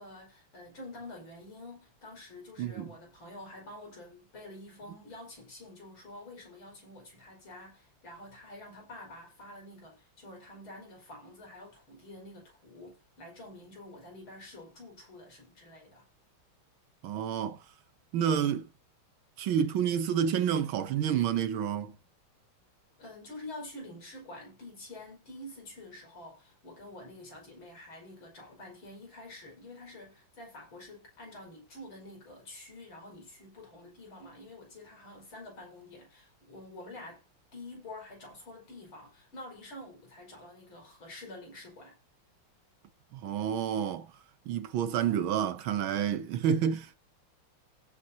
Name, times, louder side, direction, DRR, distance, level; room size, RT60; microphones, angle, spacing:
voice 1, 0.0-16.1 23.0-37.2 37.5-42.0, left 1 dB, 70° left, 6.2 m, -48 dB
voice 2, 2.6-2.9 17.0-17.6 18.1-18.7 19.4-21.9 43.1-44.1 44.5-47.0, right 8 dB, 75° right, 1.7 m, -29 dB
17.0 x 8.5 x 2.9 m
omnidirectional pair, 2.3 m